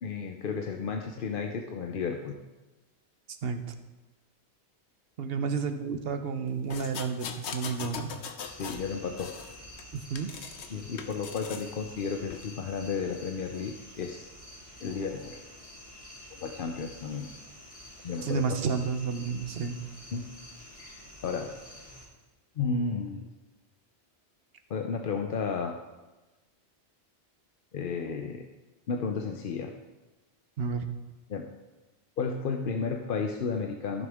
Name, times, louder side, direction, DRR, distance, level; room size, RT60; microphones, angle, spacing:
voice 1, 0.0-2.4 8.6-9.3 10.7-14.3 14.8-15.4 16.3-17.3 18.0-18.6 20.1-20.3 20.8-21.6 22.6-23.3 24.7-25.8 27.7-28.4 28.9-29.7 31.3-31.5 32.2-34.1, left 5 dB, 55° left, 4 dB, 0.8 m, -33 dB
voice 2, 3.3-3.6 5.2-8.1 9.9-10.5 18.2-19.8 30.6-30.9, right 5 dB, 65° right, 8 dB, 1.0 m, -31 dB
sound 1, 6.7-8.9 9.2-10.7 11.0-11.7 12.3-12.5, left 6 dB, 80° left, 1.0 m, -40 dB
sound 2, 8.4-22.1, left 1 dB, 30° left, 2.7 m, -49 dB
14.5 x 6.5 x 3.5 m, 1.1 s
omnidirectional pair, 1.1 m